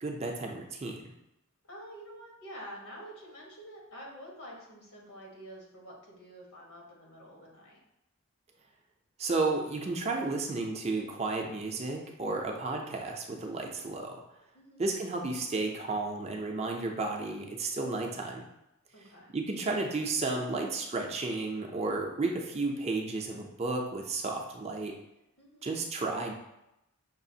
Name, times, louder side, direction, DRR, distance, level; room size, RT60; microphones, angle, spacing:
voice 1, 0.0-1.0 9.2-14.2 14.8-18.4 19.3-24.9 25.6-26.3, right 3 dB, 30° right, 1 dB, 0.4 m, -32 dB
voice 2, 1.6-7.8 14.5-14.9 18.9-19.3 25.4-25.7, equal, 85° left, -2 dB, 1.3 m, -48 dB
6.0 x 2.4 x 2.7 m, 0.87 s
head